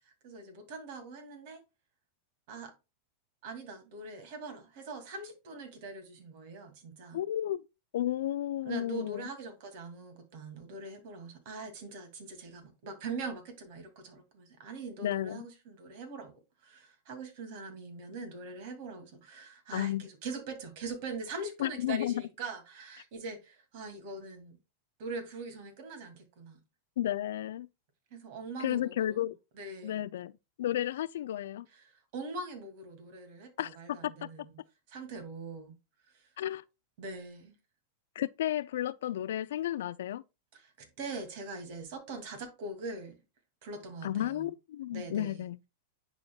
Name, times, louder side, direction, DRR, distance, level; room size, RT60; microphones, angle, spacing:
voice 1, 0.0-1.6 2.5-2.7 3.4-7.2 8.6-16.3 16.6-24.6 25.0-26.6 28.1-29.2 29.6-30.0 31.7-34.6 34.9-35.8 36.1-36.3 37.0-37.5 40.5-43.1 43.6-44.5 44.9-45.4, right 3 dB, 60° right, 2.3 m, -42 dB
voice 2, 7.1-7.6 7.9-9.3 15.0-15.5 19.7-20.0 21.6-22.2 27.0-27.7 28.6-29.4 29.8-30.3 30.6-31.7 33.6-34.1 36.4-36.6 38.2-40.2 44.0-45.6, left 12 dB, 75° left, 0.4 m, -32 dB
10.5 x 4.2 x 2.3 m
hypercardioid pair, 110°, 0 cm